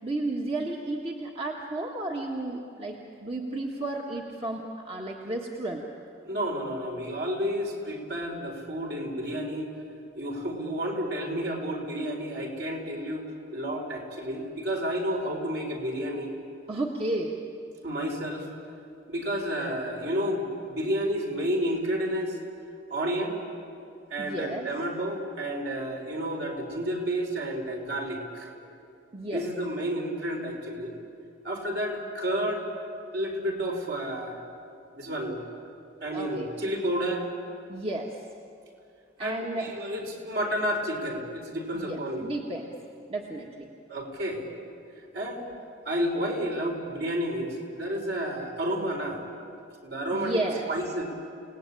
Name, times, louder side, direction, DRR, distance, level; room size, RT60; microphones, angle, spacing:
voice 1, 0.0-5.8 16.7-17.4 24.2-24.7 29.1-29.5 36.1-36.5 37.7-38.1 39.2-39.7 41.7-42.7 43.1-43.7 50.1-50.7, right 2 dB, 30° right, -1 dB, 1.6 m, -33 dB
voice 2, 6.2-9.7 10.1-13.2 13.5-16.3 17.8-18.5 19.1-22.4 22.9-23.4 24.1-28.5 29.3-30.9 31.4-32.6 33.1-34.4 34.9-35.4 36.0-37.3 39.2-42.2 43.9-44.5 45.1-45.5 45.8-49.2 49.8-50.4 50.7-51.0, equal, 60° right, 1 dB, 4.7 m, -31 dB
30.0 x 18.5 x 8.6 m, 2.5 s
head